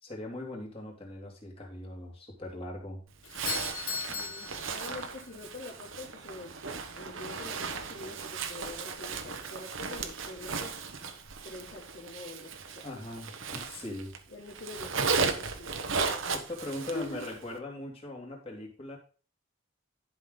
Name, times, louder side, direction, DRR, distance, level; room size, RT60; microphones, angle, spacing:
voice 1, 0.0-3.0 12.8-14.1 16.3-19.0, left 1 dB, 25° left, -1 dB, 2.6 m, -40 dB
Doorbell, 3.2-5.4, left 7 dB, 85° left, 1.8 m, -38 dB
Zipper (clothing), 3.3-14.2 14.5-17.4, right 4 dB, 65° right, 1.1 m, -36 dB
voice 2, 3.9-6.6 6.9-10.7 11.4-13.0 14.3-15.8 16.9-17.2, left 2 dB, 45° left, -4 dB, 1.7 m, -45 dB
11.5 x 5.9 x 3.9 m, 0.38 s
head